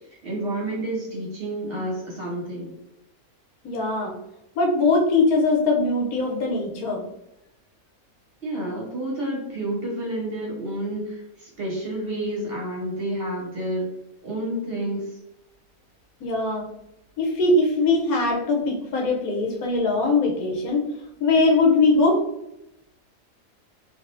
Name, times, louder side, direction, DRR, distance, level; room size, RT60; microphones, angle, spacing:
voice 1, 0.2-2.7 8.4-13.9 14.2-15.2, right 1 dB, 45° right, -4 dB, 1.0 m, -29 dB
voice 2, 3.6-4.1 4.6-7.0 16.2-16.7 17.2-20.8 21.2-22.2, left 3 dB, 75° left, 1 dB, 1.1 m, -21 dB
3.3 x 2.6 x 2.6 m, 0.86 s
omnidirectional pair, 1.6 m